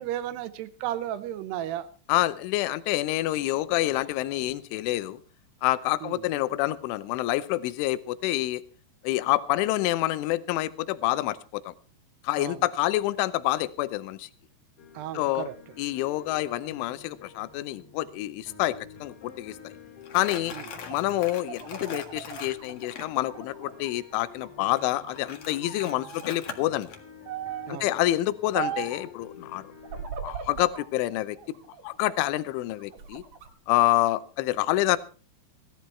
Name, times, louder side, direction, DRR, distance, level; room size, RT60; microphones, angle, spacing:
voice 1, 0.0-1.9 6.0-6.3 12.4-12.6 14.9-15.5 20.5-20.7 27.7-27.9, right 12 dB, 75° right, 13 dB, 2.7 m, -34 dB
voice 2, 2.1-5.2 5.6-8.6 9.0-11.7 12.2-14.3 15.1-15.5 15.8-18.8 19.0-19.6 20.1-20.5 20.9-26.9 27.7-29.6 30.2-31.4 31.8-33.2 33.7-35.0, left 16 dB, 85° left, 14 dB, 3.3 m, -27 dB
sound 1, 14.8-30.0, left 7 dB, 40° left, 2.5 m, -49 dB
Crumpling crinkling, 20.0-23.1 24.8-27.0, left 6 dB, 65° left, 1.4 m, -41 dB
sound 2, 20.7-24.0 24.3-25.2 25.6-26.3 27.3-27.8 28.5-29.1 29.8-30.9 31.4-32.3 32.8-33.5, right 8 dB, 55° right, 2.1 m, -38 dB
17.0 x 13.0 x 4.5 m, 0.38 s
omnidirectional pair, 5.5 m